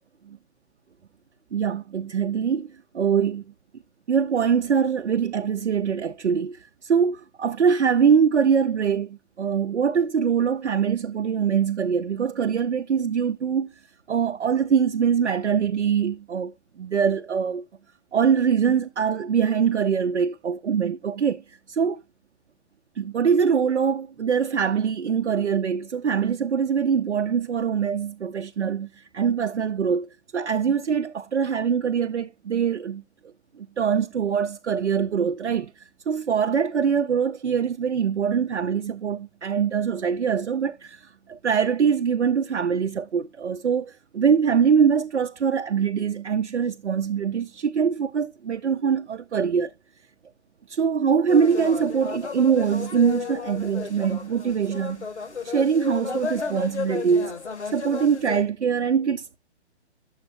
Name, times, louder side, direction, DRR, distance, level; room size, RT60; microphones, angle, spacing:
voice 1, 1.5-3.4 4.1-13.7 14.1-17.7 18.1-22.0 23.0-33.0 33.6-49.7 50.7-55.1 55.4-57.4 57.7-59.4, right 7 dB, 80° right, 0.6 m, -23 dB
sound 1, 51.3-58.4, left 5 dB, 75° left, 2.2 m, -33 dB
11.0 x 7.2 x 2.6 m
figure-of-eight pair, 135°, 34 cm